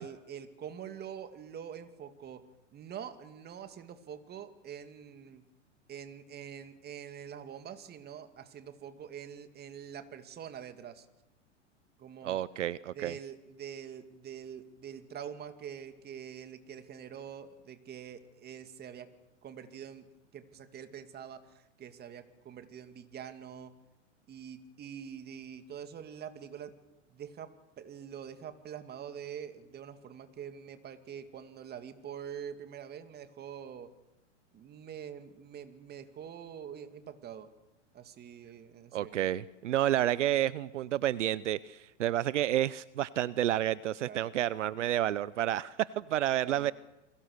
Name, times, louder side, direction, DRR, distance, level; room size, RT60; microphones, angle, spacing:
voice 1, 0.0-2.4 2.7-5.4 5.9-11.1 12.0-12.4 12.9-19.1 19.4-23.7 24.3-26.8 27.1-33.9 34.5-37.5 37.9-39.3 44.0-44.3 46.4-46.7, right 8 dB, 25° right, 9 dB, 2.5 m, -45 dB
voice 2, 12.2-13.2 38.9-46.7, right 12 dB, 75° right, 19 dB, 0.8 m, -30 dB
29.0 x 22.0 x 6.7 m, 0.94 s
hypercardioid pair, 110°, 37 cm